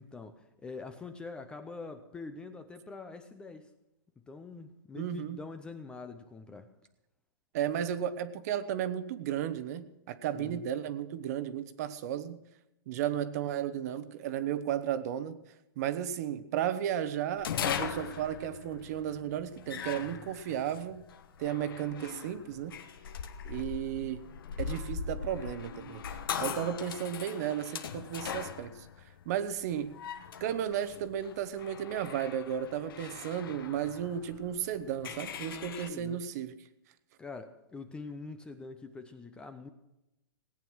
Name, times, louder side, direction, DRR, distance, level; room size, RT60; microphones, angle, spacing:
voice 1, 0.0-3.7 4.3-6.7 10.3-10.6 35.5-36.2 37.2-39.7, left 3 dB, 5° left, 8 dB, 0.6 m, -45 dB
voice 2, 4.9-5.4 7.5-12.4 12.9-15.4 15.8-21.0 21.4-22.8 23.4-24.3 24.6-26.0 26.4-28.9 29.3-29.9 30.4-36.5, right 10 dB, 40° right, 13 dB, 0.9 m, -34 dB
sound 1, 17.4-35.9, left 7 dB, 65° left, 1.3 m, -40 dB
18.0 x 9.1 x 6.2 m, 0.91 s
hypercardioid pair, 160°, 13 cm